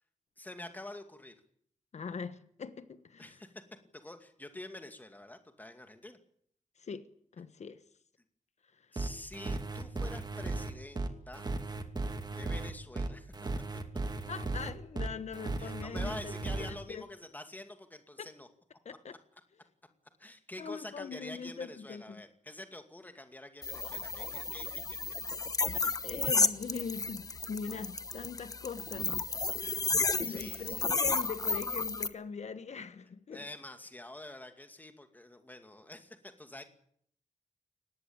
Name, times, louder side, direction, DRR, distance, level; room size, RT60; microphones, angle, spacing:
voice 1, 0.4-1.4 3.2-3.6 3.9-6.2 8.9-11.5 12.3-13.3 15.6-18.5 20.2-25.0 25.7-25.9 29.6-29.8 30.2-30.9 33.3-36.6, left 1 dB, 15° left, 2.4 m, -47 dB
voice 2, 1.9-3.4 6.8-7.1 7.3-7.8 8.7-9.0 14.3-16.3 16.6-17.0 18.2-18.3 18.8-19.2 20.6-22.2 25.8-29.8 30.1-33.4, left 5 dB, 70° left, 1.2 m, -42 dB
sound 1, 9.0-16.7, right 2 dB, 35° right, 2.4 m, -36 dB
sound 2, 23.6-32.1, left 3 dB, 30° left, 1.1 m, -32 dB
23.0 x 19.0 x 8.8 m
wide cardioid pair, 150°, 12 cm